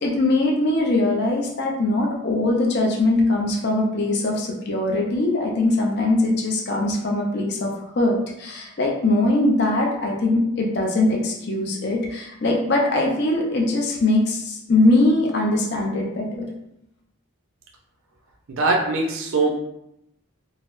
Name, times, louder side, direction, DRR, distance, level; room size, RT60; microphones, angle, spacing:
voice 1, 0.0-7.7 7.9-16.5, left 2 dB, 50° left, -1 dB, 0.5 m, -21 dB
voice 2, 18.5-19.5, right 3 dB, 70° right, 1 dB, 0.5 m, -21 dB
3.9 x 2.0 x 2.5 m, 0.81 s
head